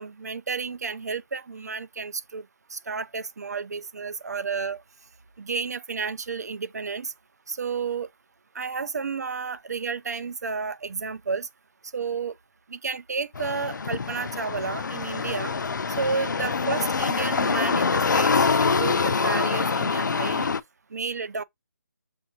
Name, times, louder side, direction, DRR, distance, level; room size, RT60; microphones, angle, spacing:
voice 1, 0.0-2.4 2.7-4.8 5.4-7.1 7.5-8.1 8.5-11.5 11.9-12.3 12.7-15.5 16.0-20.5 20.9-21.4, right 5 dB, 60° right, 0.5 m, -31 dB
sound 1, 13.3-20.6, left 5 dB, 85° left, 0.4 m, -25 dB
6.7 x 2.5 x 2.8 m
hypercardioid pair, 175°, 10 cm